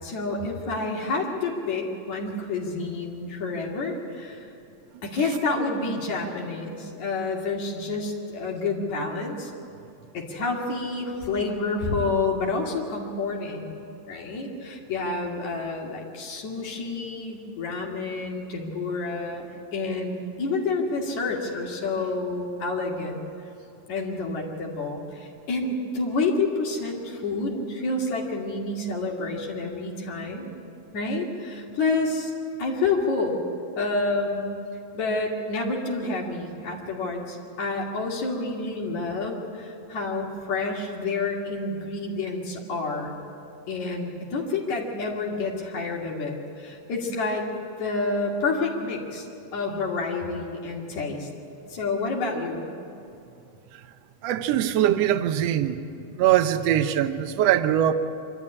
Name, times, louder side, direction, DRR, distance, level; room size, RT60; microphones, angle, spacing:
voice 1, 0.0-4.5 5.0-9.5 10.1-13.8 14.1-23.2 23.9-30.5 30.9-32.3 32.6-33.4 33.8-34.5 34.9-43.1 43.7-47.5 47.8-49.3 49.5-51.3 51.7-52.6, left 3 dB, 75° left, -1 dB, 3.8 m, -29 dB
voice 2, 54.2-55.8 56.1-57.9, right 11 dB, 70° right, 10 dB, 1.8 m, -22 dB
26.0 x 13.0 x 9.9 m, 2.6 s
omnidirectional pair, 3.3 m